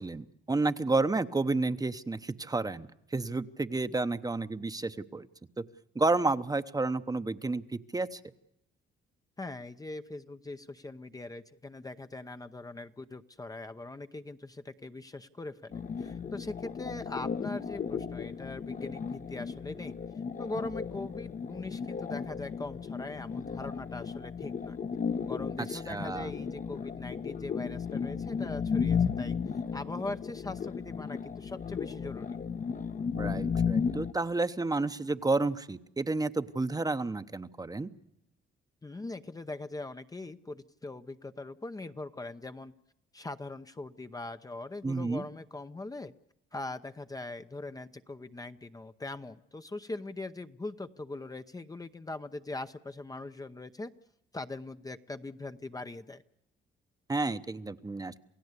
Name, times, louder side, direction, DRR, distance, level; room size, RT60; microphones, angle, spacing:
voice 1, 0.0-5.3 5.6-5.7 5.9-8.2 25.6-26.3 33.1-37.9 44.8-45.2 57.1-58.1, right 3 dB, 20° right, 11 dB, 0.9 m, -31 dB
voice 2, 9.4-19.9 20.4-24.8 25.3-29.4 29.7-32.4 38.8-42.7 43.1-46.1 46.5-53.9 54.3-56.2, left 2 dB, 20° left, 9 dB, 0.8 m, -41 dB
sound 1, 15.7-34.1, left 6 dB, 40° left, 1.0 m, -34 dB
28.5 x 16.0 x 8.2 m, 0.82 s
cardioid pair, 90°, 20 cm